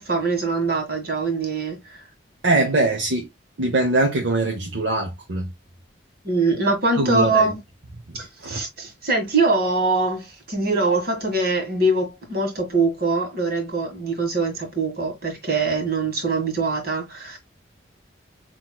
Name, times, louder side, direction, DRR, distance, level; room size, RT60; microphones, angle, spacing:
voice 1, 0.0-2.0 6.2-7.6 8.1-17.4, right 3 dB, 50° right, 1.6 m, -23 dB
voice 2, 2.4-3.3 3.6-5.5 7.0-7.5 8.4-8.6, right 2 dB, 65° right, 0.8 m, -22 dB
5.9 x 3.0 x 2.2 m
head